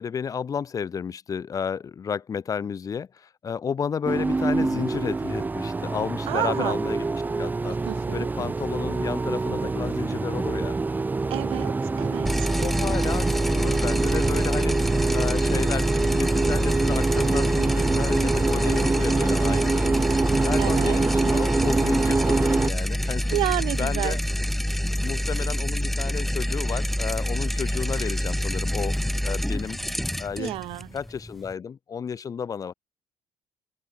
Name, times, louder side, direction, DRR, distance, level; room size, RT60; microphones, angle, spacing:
voice 1, 0.0-7.0 7.4-7.8 8.1-10.8 12.6-14.8 15.1-19.9 20.4-23.4 23.8-24.2 25.0-29.8 30.2-30.5 30.9-32.7, left 7 dB, 40° left, 6.7 m, -32 dB
sound 1, 4.1-22.7, right 3 dB, 20° right, 1.7 m, -25 dB
voice 2, 6.3-6.8 7.9-8.3 11.3-12.5 20.6-21.0 23.3-24.2 30.4-30.9, right 17 dB, 75° right, 3.7 m, -30 dB
sound 2, 12.3-31.5, equal, ahead, 1.7 m, -27 dB
open air
cardioid pair, 105°, 9 cm